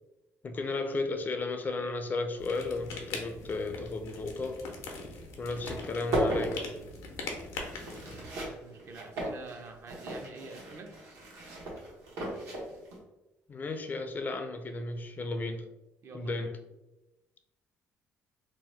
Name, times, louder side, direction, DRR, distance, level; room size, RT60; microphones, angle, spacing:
voice 1, 0.4-4.7 5.4-6.6 13.5-15.7 16.1-16.6, left 3 dB, 35° left, 6 dB, 0.3 m, -34 dB
sound 1, 2.4-8.3, left 3 dB, 90° left, 0.6 m, -42 dB
sound 2, 5.1-5.2 5.5-13.0, right 1 dB, 85° right, 1.0 m, -36 dB
voice 2, 8.0-10.9 16.0-16.5, right 3 dB, 50° right, 4 dB, 0.5 m, -47 dB
2.8 x 2.1 x 3.2 m, 1.0 s
cardioid pair, 95°, 5 cm